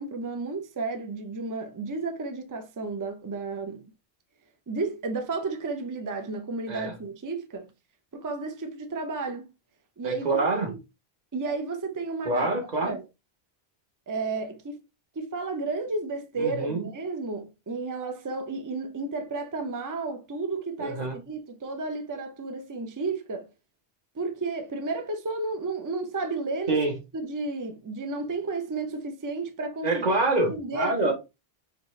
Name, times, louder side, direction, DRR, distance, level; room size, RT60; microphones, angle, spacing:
voice 1, 0.0-3.9 4.7-7.7 8.1-9.5 10.0-10.8 11.3-12.5 12.8-13.1 14.1-14.8 15.2-23.5 24.1-26.9 27.1-30.0 30.5-31.1, right 3 dB, 25° right, 0.4 m, -32 dB
voice 2, 10.0-10.7 12.2-12.9 16.4-16.9 20.8-21.1 26.7-26.9 29.8-31.1, right 2 dB, 40° right, 1.2 m, -26 dB
5.1 x 2.3 x 3.1 m
omnidirectional pair, 1.1 m